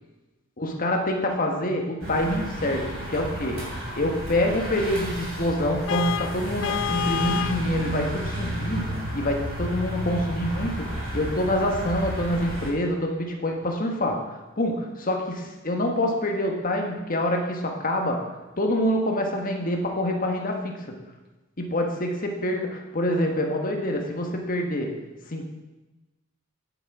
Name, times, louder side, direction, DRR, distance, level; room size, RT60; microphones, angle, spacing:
voice 1, 0.6-3.6 4.0-18.2 18.6-21.0 21.6-24.9 25.3-25.4, left 1 dB, 45° left, 2 dB, 1.4 m, -26 dB
sound 1, 2.0-12.7, right 1 dB, 85° right, 3.4 m, -32 dB
Vehicle horn car horn honking, 5.9-7.6, left 10 dB, 65° left, 0.3 m, -28 dB
9.4 x 7.9 x 4.7 m, 1.1 s
head